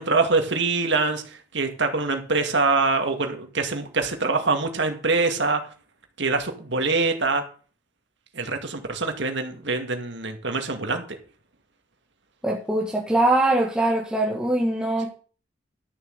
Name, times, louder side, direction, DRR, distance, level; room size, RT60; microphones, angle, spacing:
voice 1, 0.0-5.6 6.2-7.4 8.3-11.0, right 3 dB, 65° right, 5 dB, 2.3 m, -24 dB
voice 2, 12.4-15.1, right 1 dB, 5° right, -3 dB, 1.7 m, -22 dB
12.5 x 7.4 x 6.6 m, 0.40 s
head